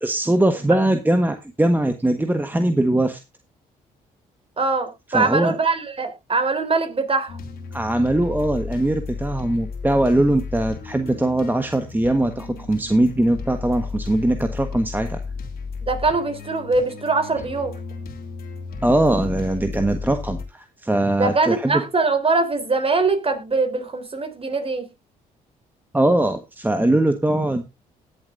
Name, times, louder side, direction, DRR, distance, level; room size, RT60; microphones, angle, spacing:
voice 1, 0.0-3.2 5.1-5.6 7.7-15.2 18.8-21.8 25.9-27.6, right 1 dB, 10° right, 7 dB, 1.3 m, -21 dB
voice 2, 4.6-7.4 15.8-17.7 21.2-24.8, right 3 dB, 35° right, 7 dB, 3.6 m, -22 dB
sound 1, 7.3-20.5, left 4 dB, 65° left, 3.2 m, -34 dB
19.5 x 7.4 x 2.6 m, 0.24 s
supercardioid pair, 60°, 17 cm